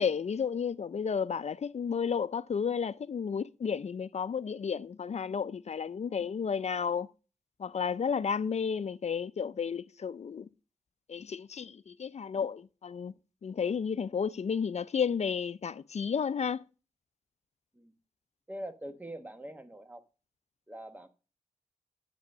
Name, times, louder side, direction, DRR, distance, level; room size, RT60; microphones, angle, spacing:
voice 1, 0.0-7.1 7.6-10.5 11.1-13.1 13.4-16.6, left 6 dB, 60° left, 0.5 m, -32 dB
voice 2, 18.5-20.0 20.7-21.1, right 1 dB, 15° right, 1.2 m, -43 dB
8.3 x 7.0 x 6.5 m
cardioid pair, 65°, 13 cm